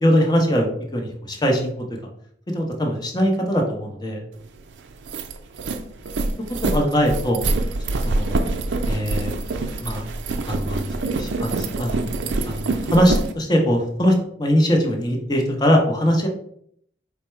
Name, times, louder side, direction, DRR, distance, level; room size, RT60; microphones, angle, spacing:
voice 1, 0.0-1.7 2.5-4.2 6.6-7.4 8.0-8.4 8.9-9.3 9.8-10.1 10.5-10.8 11.2-12.1 12.5-16.3, equal, 25° left, 1 dB, 0.7 m, -21 dB
sound 1, 4.5-4.6 4.9-13.3, right 2 dB, 80° right, 0.4 m, -25 dB
4.5 x 2.1 x 4.3 m, 0.66 s
head